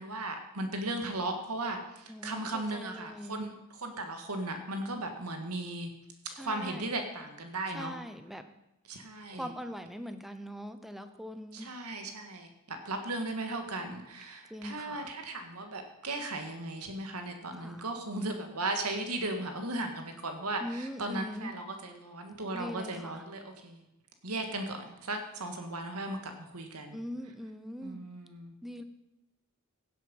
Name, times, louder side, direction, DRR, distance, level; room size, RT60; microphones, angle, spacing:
voice 1, 0.0-5.9 6.4-7.9 8.9-9.5 11.5-23.9 24.2-27.0 27.8-28.5, right 2 dB, 80° right, 5 dB, 2.0 m, -36 dB
voice 2, 2.1-3.4 6.3-6.9 7.7-8.5 9.3-11.7 14.5-15.1 17.5-17.9 20.6-21.6 22.5-23.3 26.9-28.0 28.6-28.8, equal, ahead, 8 dB, 0.8 m, -42 dB
16.5 x 7.6 x 5.5 m, 0.93 s
head